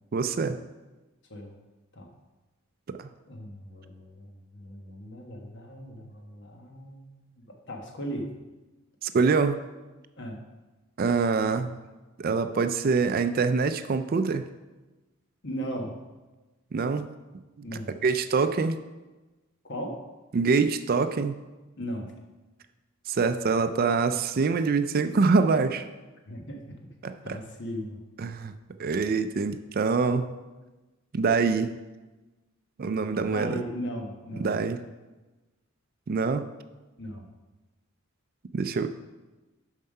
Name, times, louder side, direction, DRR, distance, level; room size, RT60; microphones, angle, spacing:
voice 1, 0.1-0.6 3.0-3.1 9.0-9.6 11.0-11.8 12.2-14.5 16.7-17.1 17.6-17.7 18.0-18.8 20.3-21.4 23.1-25.9 27.0-27.4 28.2-28.5 28.8-30.3 31.1-31.7 32.8-33.6 34.3-34.8 36.1-36.5 38.5-38.9, right 4 dB, 40° right, 10 dB, 0.4 m, -25 dB
voice 2, 3.3-8.3 10.2-10.4 15.4-15.9 17.6-17.9 19.6-20.0 21.8-22.1 26.3-26.8 27.0-28.0 33.3-34.5 37.0-37.3, equal, 55° left, 2 dB, 1.3 m, -37 dB
7.2 x 5.6 x 5.4 m, 1.2 s
head